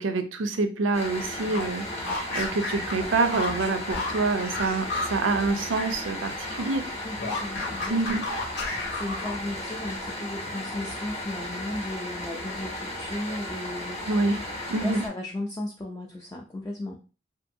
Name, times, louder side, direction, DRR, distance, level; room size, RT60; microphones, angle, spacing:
voice 1, 0.0-1.8 2.3-6.8 7.9-8.2 14.1-14.4 14.7-15.0, right 3 dB, 75° right, 8 dB, 0.5 m, -26 dB
sound 1, 0.9-15.1, left 1 dB, 35° left, 0.7 m, -35 dB
sound 2, 1.3-6.0 6.3-9.6, left 2 dB, 65° left, 0.9 m, -34 dB
voice 2, 7.0-8.2 8.9-14.0 14.8-17.0, left 1 dB, 15° left, -1 dB, 0.4 m, -35 dB
2.7 x 2.5 x 2.6 m, 0.35 s
head